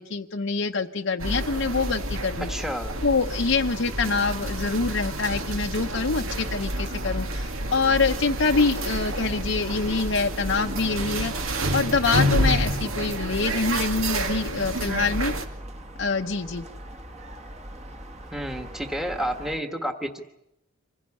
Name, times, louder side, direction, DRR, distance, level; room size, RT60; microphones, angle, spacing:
voice 1, 0.0-2.6 3.0-15.3 16.0-16.7, left 4 dB, 65° left, 3 dB, 0.8 m, -25 dB
sound 1, 1.2-15.5, right 1 dB, 80° right, 2.2 m, -29 dB
voice 2, 2.5-2.9 18.3-20.2, equal, ahead, 6 dB, 1.4 m, -30 dB
sound 2, 4.0-19.6, right 1 dB, 30° right, 1.6 m, -42 dB
25.5 x 16.5 x 9.8 m, 0.87 s
head